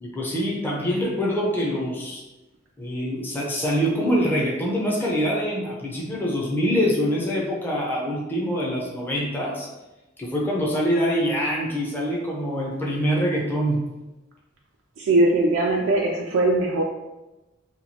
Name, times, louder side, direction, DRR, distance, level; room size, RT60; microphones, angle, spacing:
voice 1, 0.0-2.2 2.8-9.7 10.2-13.8, equal, 10° left, -4 dB, 0.5 m, -24 dB
voice 2, 15.0-16.8, right 2 dB, 70° right, -1 dB, 0.3 m, -20 dB
2.9 x 2.3 x 2.8 m, 1.0 s
head